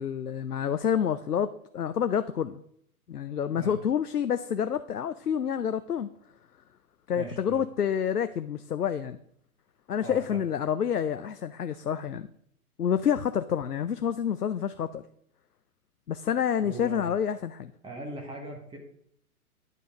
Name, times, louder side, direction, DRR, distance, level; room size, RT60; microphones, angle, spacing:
voice 1, 0.0-2.6 3.1-6.1 7.1-9.2 9.9-12.3 12.8-15.0 16.1-17.7, left 8 dB, 85° left, 11 dB, 0.6 m, -28 dB
voice 2, 7.1-7.7 10.0-10.4 16.6-17.1 17.8-18.8, right 2 dB, 10° right, 1 dB, 1.5 m, -40 dB
9.9 x 6.9 x 4.9 m, 0.70 s
figure-of-eight pair, 115°, 45 cm